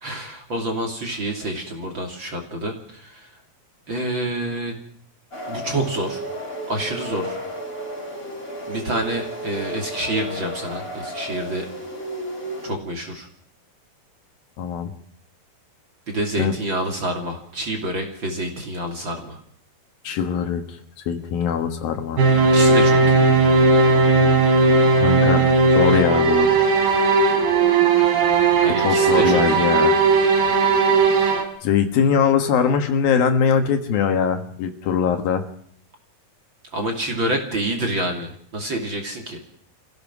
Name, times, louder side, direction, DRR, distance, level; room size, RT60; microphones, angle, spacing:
voice 1, 0.0-3.3 3.9-4.7 5.5-6.2 6.7-7.4 8.7-11.7 12.6-13.3 16.1-19.4 22.5-23.3 28.6-29.7 36.7-39.4, right 1 dB, 35° right, 2 dB, 3.1 m, -27 dB
sound 1, 5.3-12.7, equal, 15° left, 4.5 m, -33 dB
voice 2, 14.6-14.9 16.4-16.5 20.0-20.8 21.1-22.2 25.0-26.5 28.8-30.0 31.6-35.5, left 7 dB, 70° left, 6 dB, 3.2 m, -21 dB
sound 2, 22.2-31.4, right 3 dB, 75° right, 5.1 m, -17 dB
25.5 x 16.5 x 6.1 m, 0.64 s
omnidirectional pair, 4.5 m